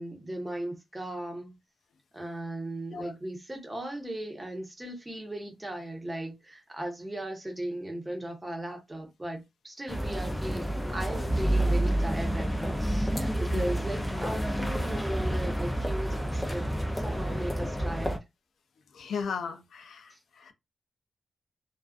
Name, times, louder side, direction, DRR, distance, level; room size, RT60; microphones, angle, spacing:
voice 1, 0.0-1.6 2.1-16.7 16.9-18.2 20.1-20.2, right 1 dB, 10° right, 0.8 m, -37 dB
sound 1, 9.9-18.2, right 1 dB, 10° left, 0.4 m, -29 dB
voice 2, 18.9-20.5, left 6 dB, 85° left, 0.4 m, -36 dB
2.4 x 2.3 x 2.3 m
wide cardioid pair, 155°, 0 cm